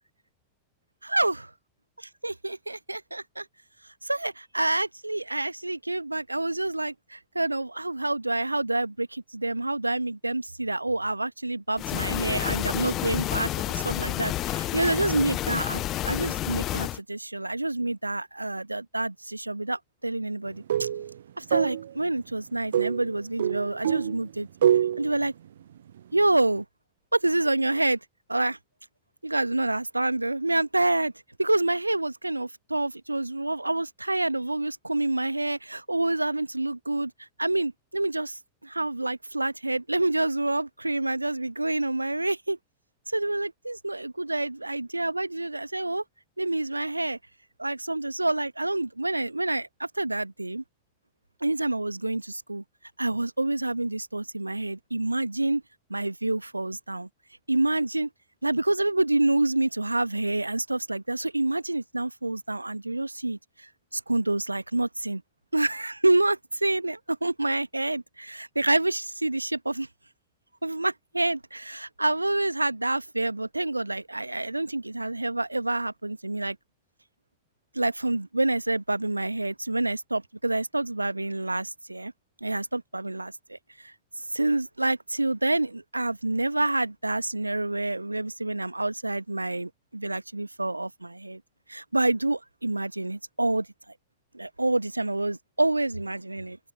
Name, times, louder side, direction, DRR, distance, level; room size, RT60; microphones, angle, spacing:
voice 1, 1.1-1.4 2.2-3.4 4.0-20.9 21.4-24.5 25.0-25.3 26.1-26.6 27.1-28.0 28.3-28.6 29.2-31.1 31.4-37.1 37.4-42.6 43.1-46.0 46.4-47.2 47.6-50.6 51.4-52.6 53.0-55.6 55.9-57.1 57.5-58.1 58.4-65.2 65.5-69.9 70.6-76.6 77.7-82.1 82.4-91.4 91.7-93.7 94.3-96.6, right 2 dB, 85° right, 1.5 m, -28 dB
sound 1, 11.8-17.0, left 15 dB, 35° left, 0.9 m, -30 dB
sound 2, 20.5-21.1 21.5-21.9 22.7-24.2 24.6-25.1, right 10 dB, 65° right, 0.4 m, -25 dB
open air
figure-of-eight pair, 90°, 0 cm